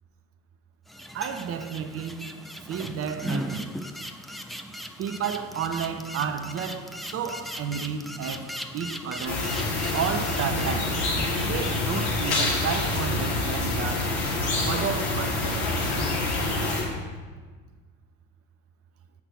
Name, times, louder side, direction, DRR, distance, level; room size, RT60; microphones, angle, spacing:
sound 1, 0.9-12.5, equal, ahead, 0.5 m, -38 dB
voice 1, 1.1-2.2 2.7-3.7 5.0-8.5 8.7-9.5 9.9-11.0 11.4-14.1 14.7-15.8, right 7 dB, 35° right, 7 dB, 0.8 m, -31 dB
sound 2, 9.3-16.8, left 2 dB, 65° left, 2.5 m, -26 dB
7.7 x 6.0 x 6.1 m, 1.4 s
figure-of-eight pair, 65°, 40 cm